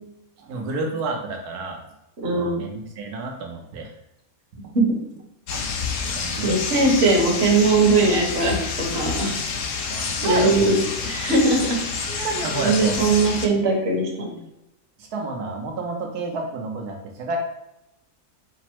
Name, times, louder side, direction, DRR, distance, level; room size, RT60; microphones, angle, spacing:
voice 1, 0.4-1.8 2.3-3.9 5.5-5.6 6.0-6.6 9.9-10.9 11.2-11.3 12.1-13.2 15.0-17.4, right 3 dB, 85° right, 2 dB, 1.3 m, -30 dB
voice 2, 2.2-2.6 4.7-4.9 6.4-8.6 8.9-9.4 10.2-10.8 11.0-11.8 12.2-12.3 12.5-14.4, right 3 dB, 45° right, -1 dB, 1.3 m, -20 dB
sound 1, 5.5-13.5, left 5 dB, 65° left, 0.9 m, -28 dB
5.2 x 2.0 x 4.5 m, 0.88 s
omnidirectional pair, 1.6 m